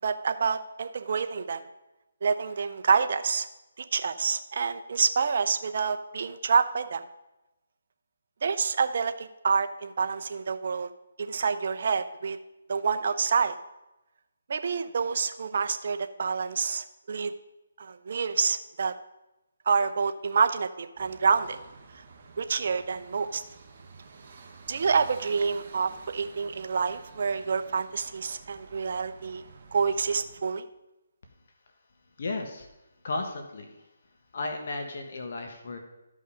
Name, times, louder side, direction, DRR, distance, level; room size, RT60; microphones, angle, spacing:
voice 1, 0.0-1.6 2.2-3.5 3.8-7.0 8.4-10.9 11.2-12.4 12.7-13.6 14.5-17.3 17.8-18.9 19.7-21.6 22.4-23.4 24.7-29.4 29.7-30.6, right 5 dB, 55° right, 8 dB, 0.8 m, -27 dB
sound 1, 21.0-30.4, right 4 dB, 35° right, 1.3 m, -50 dB
voice 2, 32.2-32.7 33.0-33.9 34.3-35.8, left 3 dB, 55° left, 4 dB, 1.4 m, -34 dB
13.5 x 5.4 x 5.0 m, 0.98 s
figure-of-eight pair, 155°, 0 cm